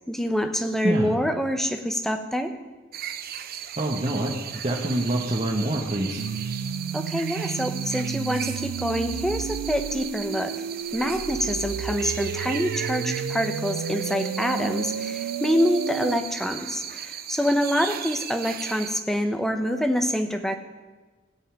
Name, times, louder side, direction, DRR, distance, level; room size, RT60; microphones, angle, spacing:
voice 1, 0.1-2.5 6.9-10.5 10.9-20.6, equal, ahead, 7 dB, 0.8 m, -26 dB
sound 1, 2.9-19.0, right 10 dB, 45° right, 0.6 m, -37 dB
voice 2, 3.8-6.2, right 1 dB, 30° right, -3 dB, 1.2 m, -26 dB
sound 2, 6.2-16.2, right 7 dB, 85° right, 0.3 m, -32 dB
16.0 x 5.5 x 8.8 m, 1.3 s
head